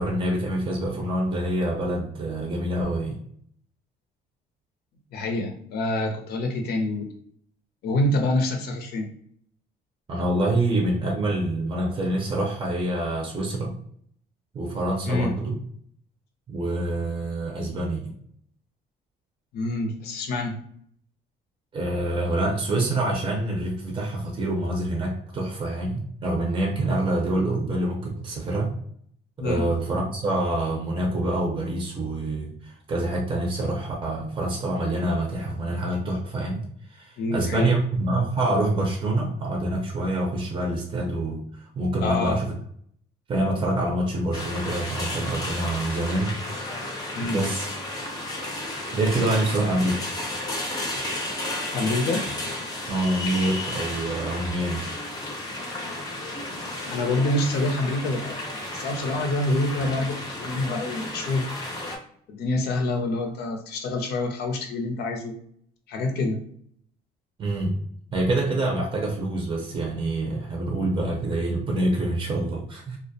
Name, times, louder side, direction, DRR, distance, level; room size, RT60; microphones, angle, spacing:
voice 1, 0.0-3.2 10.1-13.7 14.5-15.6 16.5-18.1 21.7-28.7 29.4-36.6 36.9-42.5 43.3-46.4 47.2-47.7 48.9-50.1 52.9-54.8 67.4-67.7 68.1-73.0, right 1 dB, 30° right, 0 dB, 0.6 m, -26 dB
voice 2, 5.1-7.1 7.8-9.1 15.1-15.3 19.5-20.6 29.4-29.7 37.2-37.7 42.0-42.4 47.1-47.4 51.7-52.2 56.9-61.5 62.3-65.4 65.9-66.4, left 2 dB, 70° left, 3 dB, 0.6 m, -26 dB
sound 1, 44.3-62.0, left 1 dB, 20° left, 0.6 m, -33 dB
2.3 x 2.1 x 2.6 m, 0.65 s
cardioid pair, 110°, 17 cm